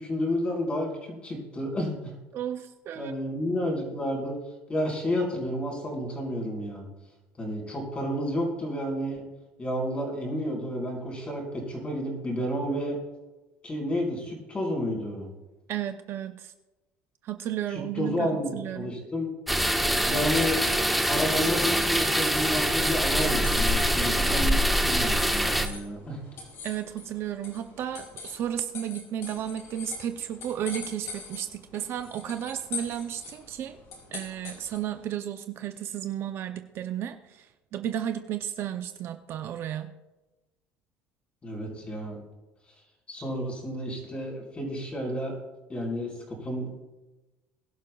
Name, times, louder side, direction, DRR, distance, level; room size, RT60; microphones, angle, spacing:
voice 1, 0.0-2.1 2.9-4.3 4.7-6.9 7.4-9.2 9.6-13.0 13.6-15.3 17.7-19.3 20.0-20.6 21.1-26.2 41.4-42.2 43.1-45.3 45.7-46.7, equal, 20° left, -1 dB, 4.5 m, -31 dB
voice 2, 2.3-3.1 15.7-16.5 17.2-19.0 26.6-33.8 34.1-39.9, right 10 dB, 45° right, 8 dB, 0.6 m, -33 dB
sound 1, 19.5-25.7, equal, ahead, 0.9 m, -24 dB
sound 2, 23.1-35.0, left 4 dB, 50° left, 4.8 m, -44 dB
22.0 x 11.5 x 2.3 m, 1.1 s
cardioid pair, 145°, 6 cm